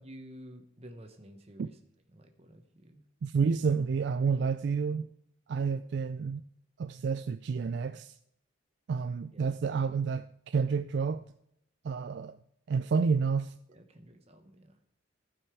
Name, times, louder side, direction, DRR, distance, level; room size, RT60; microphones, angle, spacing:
voice 1, 0.0-1.8 2.1-3.0 9.3-9.6 13.7-14.8, equal, 30° right, 1.2 m, -51 dB
voice 2, 3.2-5.1 5.5-6.4 6.8-8.1 8.9-11.2 11.8-12.4 12.7-13.5, right 5 dB, 60° right, 0.3 m, -29 dB
15.5 x 5.6 x 4.7 m
head